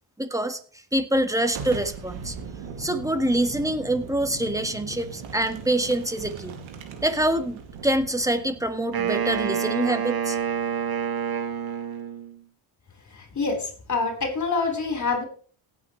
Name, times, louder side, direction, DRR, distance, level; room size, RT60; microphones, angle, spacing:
voice 1, 0.2-0.6 0.9-2.3 2.8-6.6 7.0-10.4, right 1 dB, 5° right, 8 dB, 1.6 m, -25 dB
Boom, 1.5-11.1, right 5 dB, 85° right, 2.5 m, -40 dB
Wind instrument woodwind instrument, 8.9-12.4, right 8 dB, 50° right, 2.1 m, -27 dB
voice 2, 13.1-15.2, left 4 dB, 40° left, 3 dB, 4.4 m, -26 dB
17.5 x 8.3 x 3.2 m, 0.43 s
cardioid pair, 90°, 46 cm